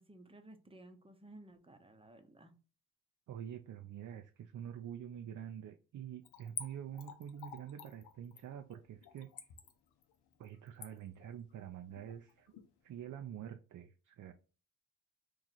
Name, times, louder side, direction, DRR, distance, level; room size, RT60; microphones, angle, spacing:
voice 1, 0.0-2.5, right 1 dB, 15° right, 0.7 m, -56 dB
voice 2, 3.3-9.3 10.4-12.5 12.8-14.3, right 9 dB, 50° right, 0.5 m, -46 dB
Splash splatter / Trickle dribble, 6.2-12.7 13.0-13.1, left 8 dB, 80° left, 0.7 m, -49 dB
3.1 x 2.4 x 3.9 m
supercardioid pair, 60°, 39 cm